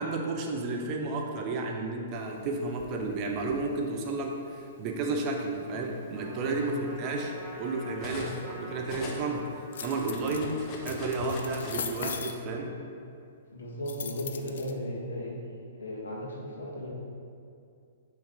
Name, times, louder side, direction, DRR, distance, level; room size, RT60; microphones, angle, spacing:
voice 1, 0.0-6.7 7.0-12.7, right 3 dB, 35° right, 1 dB, 0.8 m, -32 dB
Cutlery silverware, 2.4-3.7 4.6-4.8 5.2-8.5 8.8-11.9, left 2 dB, 35° left, 0.9 m, -43 dB
Trumpet, 6.1-10.8, right 1 dB, ahead, 1.2 m, -45 dB
voice 2, 6.4-6.9 8.2-8.4 13.5-15.5 15.8-16.9, equal, 85° left, -3 dB, 1.4 m, -36 dB
sound 1, 9.7-10.4 10.8-12.3 13.9-14.7, left 7 dB, 70° left, 0.4 m, -37 dB
5.8 x 3.3 x 5.1 m, 2.4 s
hypercardioid pair, 125°, 0 cm